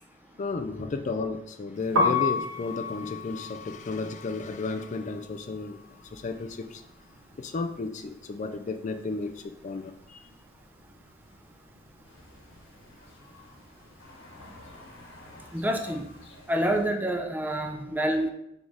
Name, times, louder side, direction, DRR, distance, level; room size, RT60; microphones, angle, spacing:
voice 1, 0.4-5.8 6.0-6.8 7.4-10.3, left 3 dB, 40° left, 8 dB, 0.4 m, -33 dB
Piano, 1.8-7.8 8.0-9.6 9.9-16.3, left 3 dB, 90° right, 1.3 m, -33 dB
sound 1, 12.0-16.8, left 2 dB, 80° left, 1.5 m, -51 dB
voice 2, 15.5-16.1 16.5-18.3, right 1 dB, 10° right, 3 dB, 0.6 m, -27 dB
6.1 x 3.7 x 4.7 m, 0.81 s
head